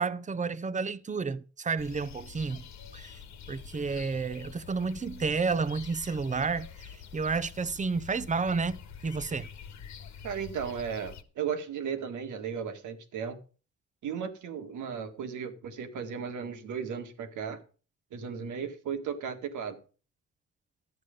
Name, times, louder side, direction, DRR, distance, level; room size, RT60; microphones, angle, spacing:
voice 1, 0.0-2.6 2.9-3.2 3.5-9.5, right 4 dB, 25° right, 0.7 m, -31 dB
sound 1, 1.8-11.2, left 7 dB, 65° left, 1.4 m, -46 dB
voice 2, 10.2-13.4 14.0-17.6 18.1-19.8, right 7 dB, 75° right, 1.8 m, -35 dB
12.5 x 8.2 x 5.1 m
cardioid pair, 90°, 30 cm